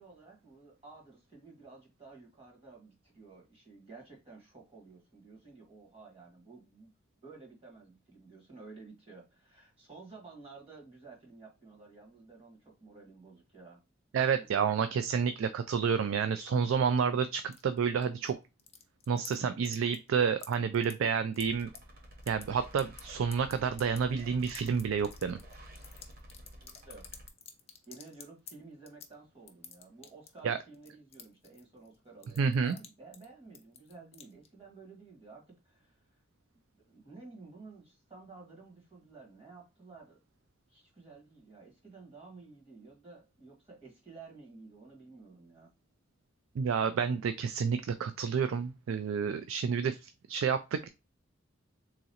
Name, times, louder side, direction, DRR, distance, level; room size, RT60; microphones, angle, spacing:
voice 1, 0.0-6.9 7.2-13.8 14.4-14.5 26.6-27.1 27.9-35.9 36.7-40.2 40.7-45.7, right 4 dB, 30° right, -1 dB, 1.4 m, -53 dB
voice 2, 14.1-18.4 19.1-21.7 22.3-25.4 30.4-30.6 32.4-32.8 46.6-50.9, right 6 dB, 80° right, 10 dB, 0.3 m, -29 dB
sound 1, 17.5-18.3 18.6-19.4 19.7-20.1 20.4-21.8 22.1-22.4 22.8-28.5 28.9-29.1 29.5-30.4 30.7-32.0 32.2-32.9 33.1-33.3 33.5-34.5, left 8 dB, 30° left, 0.6 m, -49 dB
scaryscape motorbrainwashing, 21.4-27.3, equal, 50° right, 0.7 m, -51 dB
3.7 x 3.0 x 2.8 m, 0.27 s
head